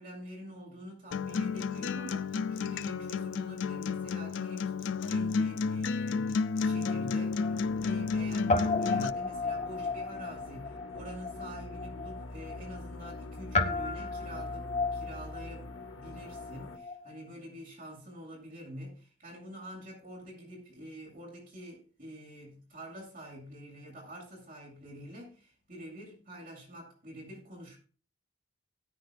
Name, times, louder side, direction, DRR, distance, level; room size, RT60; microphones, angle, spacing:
voice 1, 0.0-27.8, equal, 45° right, 7.8 m, -46 dB
Acoustic guitar, 1.1-9.1, left 5 dB, 70° left, 0.4 m, -31 dB
Guitar, 6.4-8.2 8.5-17.1, left 3 dB, 35° left, 1.1 m, -35 dB
sound 1, 7.3-16.8, left 2 dB, 85° left, 1.2 m, -45 dB
18.0 x 9.9 x 2.5 m
head